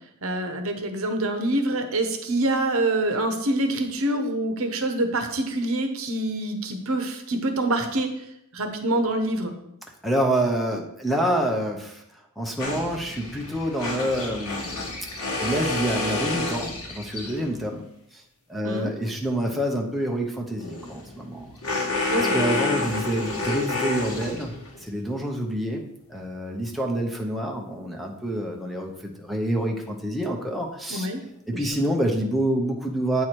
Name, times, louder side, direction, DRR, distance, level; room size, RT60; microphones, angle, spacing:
voice 1, 0.2-8.1 8.5-9.5 18.6-18.9 22.1-22.4 30.9-31.2 31.5-31.6, right 1 dB, 65° right, 6 dB, 0.9 m, -26 dB
voice 2, 10.0-12.0 12.4-15.0 15.4-17.8 18.1-18.2 18.5-21.5 22.2-24.5 24.8-25.8 26.1-31.1 31.5-33.3, right 1 dB, ahead, 1 dB, 0.7 m, -27 dB
sound 1, 12.6-17.5 20.6-24.8, left 3 dB, 75° left, 1.4 m, -29 dB
8.5 x 4.7 x 4.5 m, 0.77 s
head